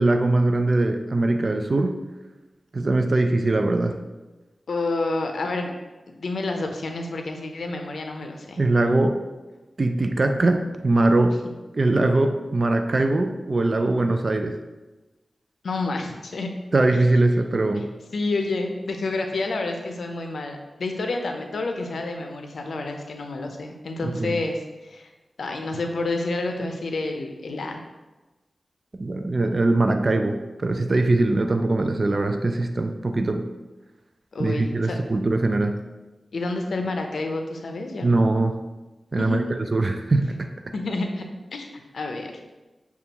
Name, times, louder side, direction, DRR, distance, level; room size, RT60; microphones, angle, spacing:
voice 1, 0.0-2.0 2.7-3.9 8.6-9.2 9.8-11.4 11.7-14.5 16.7-17.9 24.0-24.4 28.9-33.5 34.4-35.8 38.0-38.6 39.1-39.4 39.7-40.5, right 2 dB, 55° right, 6 dB, 0.3 m, -21 dB
voice 2, 4.7-5.7 6.1-8.6 15.6-16.5 18.1-25.1 25.4-27.8 34.3-35.0 36.3-38.2 39.2-39.4 40.7-41.2 41.5-41.7 41.9-42.3, left 2 dB, 80° left, 4 dB, 0.5 m, -29 dB
6.7 x 2.3 x 2.9 m, 1.1 s
cardioid pair, 45°, 0 cm